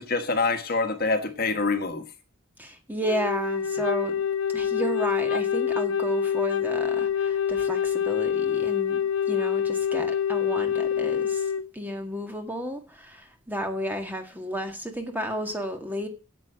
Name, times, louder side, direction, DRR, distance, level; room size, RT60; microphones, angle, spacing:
voice 1, 0.0-2.1, left 3 dB, 45° left, 1.5 m, -26 dB
voice 2, 2.6-4.1 4.5-9.0 9.3-11.5 11.7-16.1, equal, 10° right, 1.7 m, -32 dB
Wind instrument woodwind instrument, 3.0-11.7, left 8 dB, 75° left, 0.7 m, -26 dB
8.9 x 8.5 x 7.8 m
head